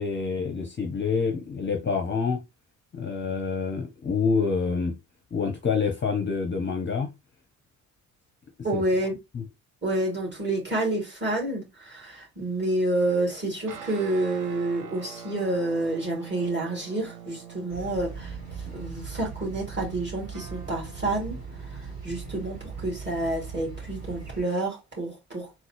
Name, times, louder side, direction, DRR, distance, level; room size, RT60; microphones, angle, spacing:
voice 1, 0.0-2.4 2.9-5.0 5.3-7.1 8.7-8.8 9.3-9.4, left 5 dB, 25° left, 0.7 m, -27 dB
voice 2, 8.6-9.1 9.8-25.7, right 2 dB, 25° right, 2.1 m, -29 dB
sound 1, 13.7-23.4, right 7 dB, 45° right, 0.9 m, -46 dB
Amsterdam Kastanjeplein (square), 17.7-24.4, right 5 dB, 90° right, 1.0 m, -39 dB
3.8 x 2.1 x 2.9 m
figure-of-eight pair, 45°, 46 cm